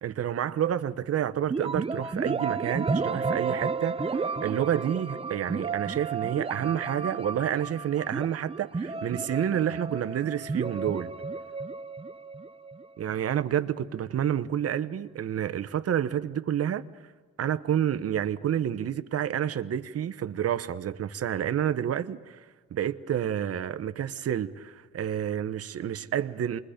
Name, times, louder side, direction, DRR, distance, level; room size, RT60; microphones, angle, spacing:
voice 1, 0.0-11.1 13.0-16.9 17.4-22.4 22.7-26.6, right 10 dB, 50° right, 0.9 m, -29 dB
sound 1, 1.5-13.2, right 4 dB, 20° right, 0.7 m, -32 dB
28.0 x 22.0 x 5.1 m
cardioid pair, 90°, 30 cm